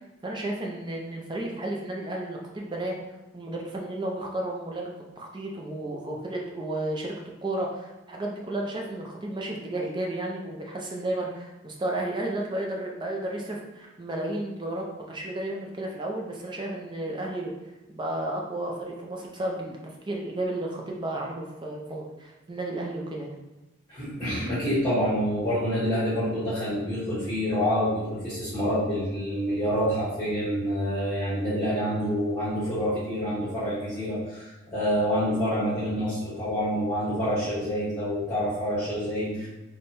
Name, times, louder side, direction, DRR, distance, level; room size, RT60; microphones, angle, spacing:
voice 1, 0.2-3.0 3.3-7.1 7.4-17.5 17.9-19.8 20.1-23.4, right 1 dB, 20° right, -1 dB, 0.5 m, -32 dB
voice 2, 23.9-39.5, equal, 15° left, -14 dB, 1.3 m, -27 dB
3.3 x 2.2 x 4.1 m, 1.0 s
head